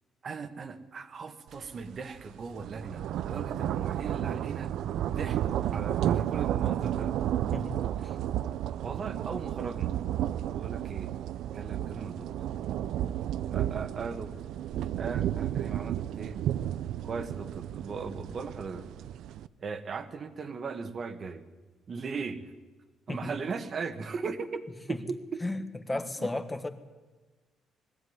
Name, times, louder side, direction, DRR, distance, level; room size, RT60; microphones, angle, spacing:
voice 1, 0.2-4.7 5.1-7.1 8.8-9.9 10.6-11.1 11.5-12.3 13.5-14.3 15.0-16.4 17.0-18.9 19.6-21.4 21.9-22.5 23.1-25.4 26.2-26.3, right 5 dB, 35° right, 9 dB, 1.6 m, -38 dB
sound 1, 1.7-1.8 2.2-19.5, right 11 dB, 75° right, 0.6 m, -32 dB
voice 2, 7.5-8.1 23.1-23.3 24.9-25.0 25.4-25.6 25.9-26.7, left 2 dB, 15° left, 8 dB, 1.4 m, -34 dB
20.5 x 15.5 x 9.6 m, 1.3 s
cardioid pair, 145°, 0 cm